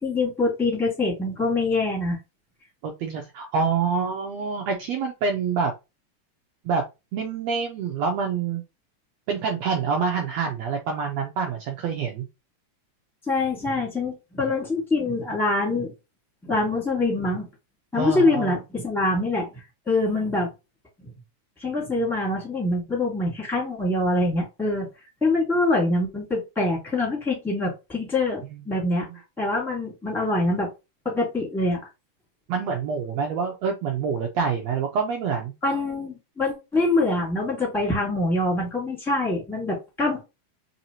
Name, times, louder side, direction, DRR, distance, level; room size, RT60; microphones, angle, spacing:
voice 1, 0.0-2.2 13.3-15.9 16.4-17.5 17.9-20.5 21.6-24.9 25.2-29.1 29.4-30.7 31.0-31.8 35.6-40.2, left 2 dB, ahead, -2 dB, 0.8 m, -24 dB
voice 2, 2.8-5.7 6.6-6.8 7.1-8.6 9.3-12.3 18.0-18.6 29.1-29.2 32.5-35.5, right 5 dB, 85° right, 2 dB, 1.5 m, -26 dB
4.8 x 2.7 x 2.9 m, 0.25 s
omnidirectional pair, 3.7 m